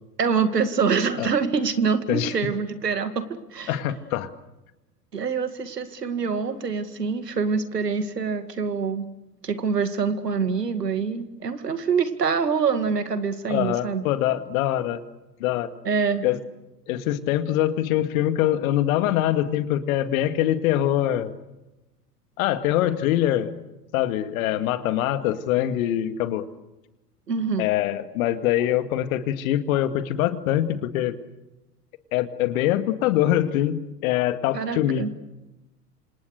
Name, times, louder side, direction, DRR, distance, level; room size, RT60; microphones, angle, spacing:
voice 1, 0.2-3.3 3.5-3.8 5.1-9.1 9.4-14.0 15.9-16.2 27.3-27.7 34.5-35.1, right 5 dB, 85° right, 10 dB, 2.3 m, -25 dB
voice 2, 3.7-4.3 13.5-15.0 15.4-15.7 16.2-16.4 16.9-21.3 22.4-23.5 23.9-26.5 27.6-31.2 32.1-35.1, left 12 dB, 60° left, 10 dB, 2.2 m, -23 dB
28.0 x 27.0 x 6.6 m, 0.99 s
figure-of-eight pair, 85°, 47 cm